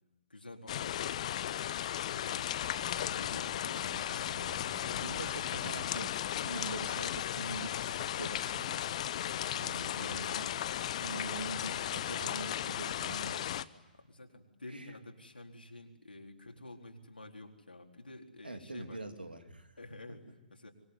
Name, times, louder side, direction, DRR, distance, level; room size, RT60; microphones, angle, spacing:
voice 1, 0.3-1.6 2.1-2.5 3.1-5.1 9.1-9.5 13.9-19.0 19.8-20.7, left 2 dB, 80° left, 2 dB, 4.1 m, -50 dB
sound 1, 0.7-13.6, left 11 dB, 40° left, 0.9 m, -36 dB
sound 2, 2.2-7.4, equal, ahead, 4.7 m, -55 dB
voice 2, 5.0-6.1 6.4-7.7 8.1-8.8 9.5-10.5 11.0-13.7 14.7-14.9 18.4-19.7, right 2 dB, 80° right, 7 dB, 3.1 m, -43 dB
25.0 x 23.0 x 9.7 m, 1.1 s
figure-of-eight pair, 125°, 5 cm